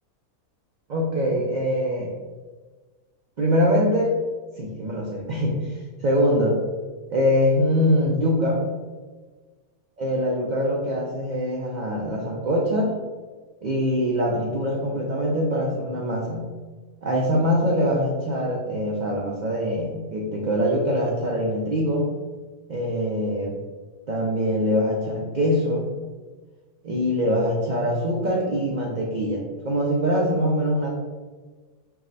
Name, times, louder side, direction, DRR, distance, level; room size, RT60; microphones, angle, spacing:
voice 1, 0.9-2.1 3.4-4.1 4.6-6.6 7.1-8.6 10.0-12.9 13.6-16.5 17.0-22.1 22.7-23.6 24.1-25.9 26.8-30.9, equal, 80° right, -3 dB, 0.4 m, -23 dB
4.6 x 2.1 x 3.9 m, 1.4 s
omnidirectional pair, 1.5 m